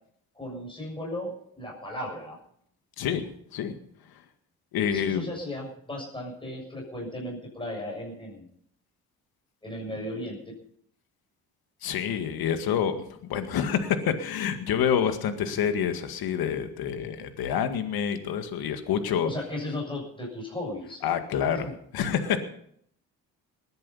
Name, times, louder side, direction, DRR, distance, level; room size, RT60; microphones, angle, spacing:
voice 1, 0.4-2.4 4.9-8.5 9.6-10.6 19.2-21.0 21.5-21.7, left 1 dB, 15° left, -2 dB, 7.1 m, -35 dB
voice 2, 4.7-5.2 11.8-12.9 13.3-19.3 21.0-21.7 21.9-22.4, left 8 dB, 70° left, 8 dB, 2.0 m, -27 dB
20.0 x 10.5 x 5.6 m, 0.68 s
supercardioid pair, 60°, 38 cm